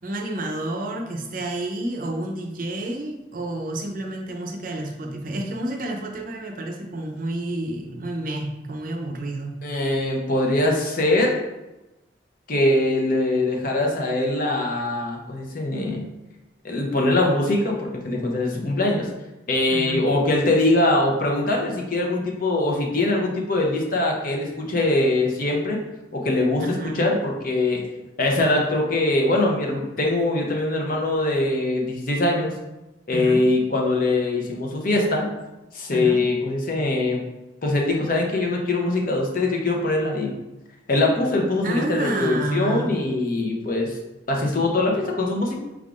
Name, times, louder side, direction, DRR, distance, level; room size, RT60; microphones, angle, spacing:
voice 1, 0.0-9.5 19.7-20.0 26.6-27.0 33.1-33.4 35.9-36.3 41.6-42.9, right 1 dB, 50° right, 2 dB, 0.6 m, -29 dB
voice 2, 9.6-11.4 12.5-16.1 16.6-19.1 19.5-25.8 26.1-27.8 28.2-32.5 33.1-35.3 35.7-37.2 37.6-40.3 40.9-44.0 44.3-45.6, left 2 dB, 50° left, 0 dB, 0.8 m, -22 dB
4.7 x 3.6 x 2.4 m, 1.0 s
head